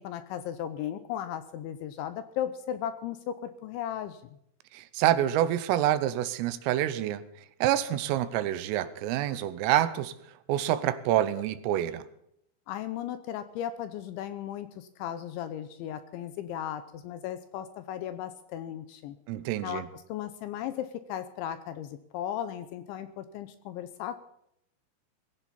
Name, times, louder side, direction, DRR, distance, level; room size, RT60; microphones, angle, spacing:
voice 1, 0.0-4.4 12.7-19.2 19.6-19.8 20.1-24.2, left 10 dB, 80° left, 2.9 m, -36 dB
voice 2, 4.7-7.2 7.6-10.1 10.5-12.1 19.3-19.9, right 12 dB, 85° right, 3.5 m, -27 dB
19.5 x 16.0 x 4.2 m
omnidirectional pair, 5.9 m